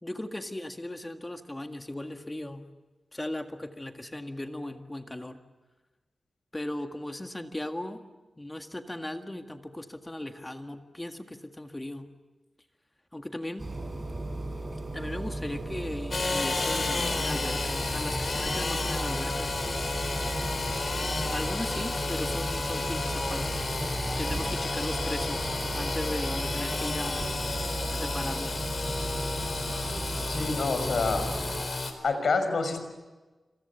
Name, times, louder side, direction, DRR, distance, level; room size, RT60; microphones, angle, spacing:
voice 1, 0.0-2.6 3.1-5.4 6.5-8.0 8.4-12.1 13.1-13.6 14.9-19.5 21.3-23.7 24.2-27.3 27.9-28.7, left 1 dB, 15° left, 5 dB, 1.8 m, -37 dB
sound 1, 13.6-31.6, right 2 dB, 25° right, 6.4 m, -35 dB
Engine / Sawing, 16.1-31.9, left 3 dB, 45° left, 4.4 m, -32 dB
voice 2, 30.3-31.3 32.0-32.8, left 4 dB, 70° left, 8 dB, 5.5 m, -27 dB
27.0 x 27.0 x 7.1 m, 1.2 s
wide cardioid pair, 115°, 0 cm